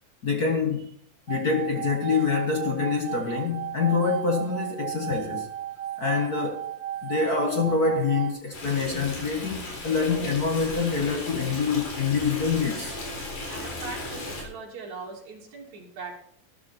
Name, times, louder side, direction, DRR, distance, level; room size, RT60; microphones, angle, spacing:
voice 1, 0.2-0.9 1.3-5.5 6.0-6.6 7.0-12.9, left 5 dB, 50° left, 1.1 m, -26 dB
sound 1, 1.3-8.3, right 11 dB, 85° right, 3.1 m, -34 dB
Stream, 8.5-14.4, left 2 dB, 65° left, 5.5 m, -36 dB
voice 2, 13.5-16.2, right 4 dB, 50° right, 4.2 m, -40 dB
13.0 x 12.5 x 4.4 m
omnidirectional pair, 4.1 m